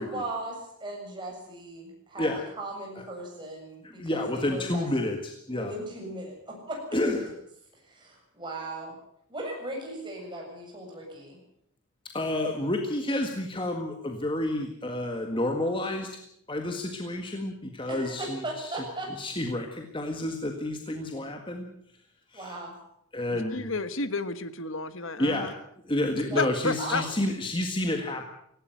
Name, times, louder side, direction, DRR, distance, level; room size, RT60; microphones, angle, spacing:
voice 1, 0.0-2.3 2.6-4.9 5.5-7.1 7.9-8.9 9.3-11.4 17.9-19.1 22.3-22.7 26.3-26.4 26.8-27.1, right 1 dB, 20° right, 0 dB, 7.5 m, -37 dB
voice 2, 3.8-5.7 6.9-7.3 12.1-16.1 16.5-18.8 19.1-21.7 22.3-22.5 23.1-23.7 25.2-25.5 25.8-28.3, left 1 dB, 20° left, 4 dB, 1.8 m, -30 dB
voice 3, 23.3-25.5 26.4-27.0, left 3 dB, 60° left, 12 dB, 1.4 m, -31 dB
18.0 x 16.5 x 9.3 m, 0.72 s
head